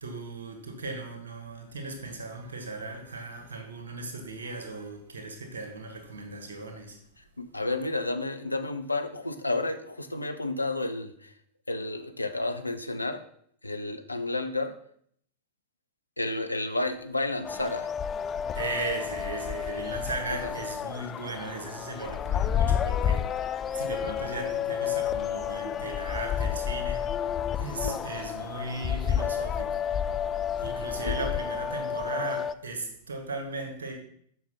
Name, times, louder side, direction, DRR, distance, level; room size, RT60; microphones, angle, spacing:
voice 1, 0.0-7.0 18.5-27.2 27.6-29.8 30.6-33.9, right 3 dB, 70° right, 1.8 m, -37 dB
voice 2, 7.4-11.3 11.7-13.2 13.6-14.8 16.2-17.9 27.7-28.0 31.0-31.2, left 2 dB, 85° left, 0.7 m, -31 dB
sound 1, 17.4-32.5, left 8 dB, 25° left, 0.3 m, -30 dB
7.8 x 5.8 x 5.7 m
figure-of-eight pair, 90°, 0 cm